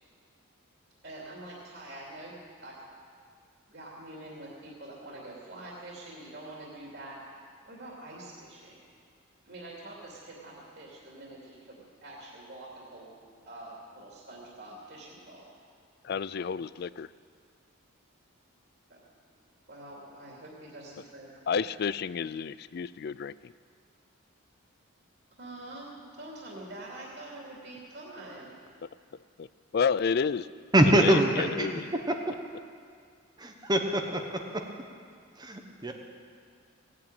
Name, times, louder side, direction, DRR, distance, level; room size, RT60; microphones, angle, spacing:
voice 1, 1.0-2.8 3.7-7.2 7.7-8.8 9.5-13.1 13.5-15.5 18.9-19.1 19.7-21.6 25.4-25.9 26.2-28.6, right 1 dB, 50° right, -4 dB, 2.8 m, -45 dB
voice 2, 16.0-17.1 21.5-23.5 29.4-29.5 29.7-30.5 30.9-31.9, left 6 dB, 50° left, 18 dB, 0.3 m, -30 dB
voice 3, 30.7-31.7 33.4-34.2 35.4-35.9, right 1 dB, 20° right, 3 dB, 1.1 m, -23 dB
18.5 x 8.7 x 8.9 m, 2.1 s
head